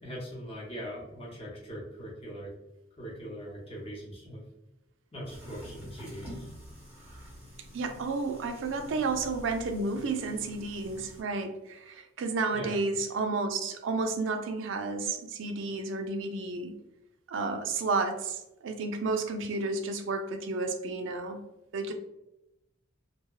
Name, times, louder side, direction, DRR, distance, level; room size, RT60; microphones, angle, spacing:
voice 1, 0.0-2.5 3.0-4.4 5.1-6.5 12.5-12.7, equal, 30° left, -5 dB, 0.7 m, -41 dB
sound 1, 5.2-11.2, equal, 10° right, 0.7 m, -47 dB
voice 2, 7.7-16.7 17.3-21.5 21.7-21.9, right 3 dB, 65° right, 6 dB, 0.3 m, -31 dB
2.6 x 2.1 x 2.3 m, 0.91 s
head